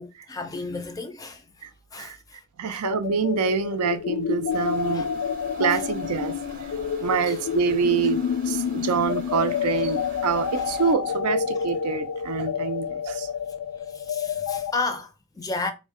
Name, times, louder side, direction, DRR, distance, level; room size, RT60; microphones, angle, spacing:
voice 1, 0.0-1.5 1.9-2.8 4.9-5.0 5.5-5.9 7.2-7.4 13.9-15.7, left 3 dB, 15° left, 0.4 m, -33 dB
voice 2, 2.6-5.1 5.6-6.7 7.0-13.3, right 6 dB, 85° right, 0.5 m, -26 dB
sound 1, 2.8-14.7, left 7 dB, 90° left, 0.3 m, -29 dB
sound 2, 4.5-10.9, right 3 dB, 40° right, 0.6 m, -44 dB
3.5 x 2.1 x 3.5 m
head